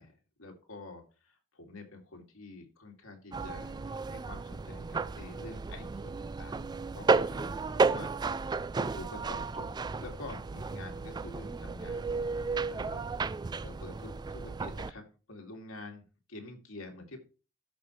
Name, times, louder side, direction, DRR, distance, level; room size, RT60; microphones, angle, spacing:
voice 1, 0.0-6.6 6.9-8.1 8.7-13.0 13.6-17.2, left 2 dB, 90° left, 2 dB, 2.7 m, -48 dB
sound 1, 3.3-14.9, right 4 dB, 20° right, 0.3 m, -33 dB
13.0 x 5.5 x 3.2 m, 0.34 s
head